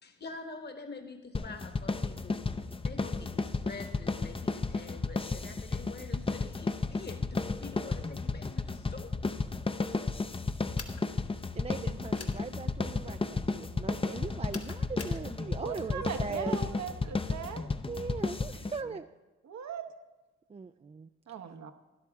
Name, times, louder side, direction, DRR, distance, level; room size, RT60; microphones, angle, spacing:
voice 1, 0.0-2.4 2.8-9.1, left 3 dB, 35° left, 5 dB, 1.3 m, -46 dB
sound 1, 1.3-18.8, left 3 dB, 20° left, 0.6 m, -33 dB
sound 2, 10.8-11.0 12.2-12.4 14.5-15.2, left 5 dB, 55° left, 1.2 m, -44 dB
voice 2, 11.6-16.8 17.9-19.1 20.5-21.1, right 4 dB, 20° right, 9 dB, 0.3 m, -40 dB
voice 3, 15.6-17.7 19.4-19.8 21.3-21.7, right 7 dB, 65° right, 7 dB, 1.0 m, -39 dB
12.0 x 11.0 x 3.6 m, 1.1 s
supercardioid pair, 50°, 30 cm